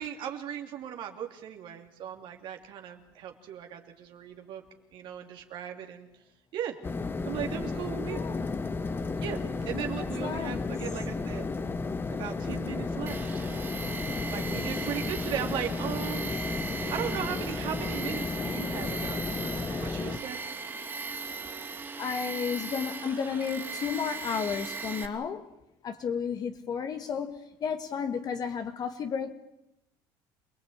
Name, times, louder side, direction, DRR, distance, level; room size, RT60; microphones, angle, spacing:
voice 1, 0.0-4.6 4.9-6.1 6.5-6.8 7.2-8.2 9.2-9.4 9.7-11.4 12.1-13.4 14.3-16.3 16.9-20.4, right 9 dB, 60° right, 4 dB, 2.9 m, -37 dB
sound 1, 6.8-20.2, left 3 dB, 25° left, 1.2 m, -33 dB
voice 2, 8.1-8.6 10.0-10.7 22.0-25.4 25.8-29.3, left 6 dB, 45° left, 7 dB, 1.7 m, -33 dB
Tools, 13.1-25.1, right 4 dB, 25° right, 3.3 m, -38 dB
27.0 x 18.5 x 8.9 m, 0.84 s
supercardioid pair, 105°, 10 cm